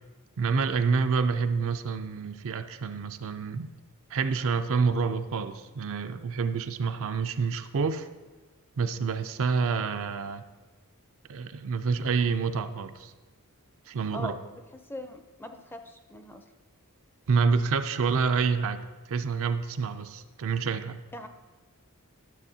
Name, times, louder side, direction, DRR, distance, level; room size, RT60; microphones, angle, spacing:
voice 1, 0.4-3.7 4.1-8.1 8.8-10.4 11.3-13.1 13.9-14.3 17.3-18.8 19.1-21.0, right 5 dB, 65° right, 9 dB, 0.4 m, -28 dB
voice 2, 14.1-14.6 14.9-16.4 21.1-21.3, left 1 dB, 10° left, 6 dB, 0.5 m, -41 dB
11.5 x 7.0 x 2.7 m, 1.2 s
head